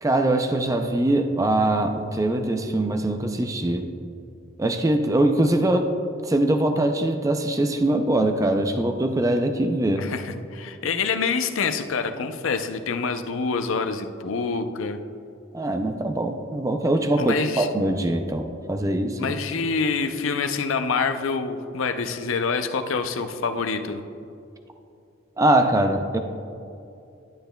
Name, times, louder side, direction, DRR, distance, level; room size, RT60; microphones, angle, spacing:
voice 1, 0.0-3.9 4.6-5.9 6.2-10.1 15.5-19.3 25.4-26.2, right 1 dB, 15° right, 6 dB, 0.4 m, -22 dB
voice 2, 10.0-15.0 17.2-17.7 19.2-24.0, left 5 dB, 90° left, 8 dB, 0.5 m, -26 dB
11.5 x 8.8 x 2.3 m, 2.6 s
head